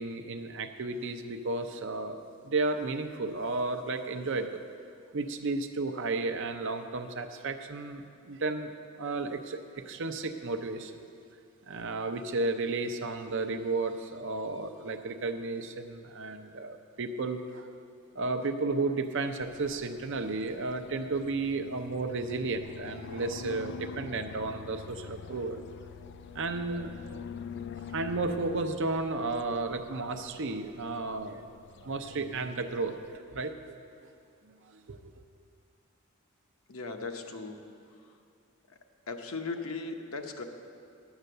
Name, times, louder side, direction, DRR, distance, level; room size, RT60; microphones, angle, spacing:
voice 1, 0.0-2.2 2.4-4.6 5.1-10.9 11.7-17.7 18.1-25.6 26.3-27.2 27.9-31.5 31.8-33.8 34.4-35.0, right 3 dB, 60° right, 7 dB, 0.7 m, -33 dB
sound 1, 19.4-33.2, left 6 dB, 55° left, 0.3 m, -46 dB
voice 2, 36.7-37.6 39.1-40.4, left 3 dB, 70° left, 4 dB, 0.9 m, -37 dB
10.0 x 8.0 x 6.6 m, 2.4 s
head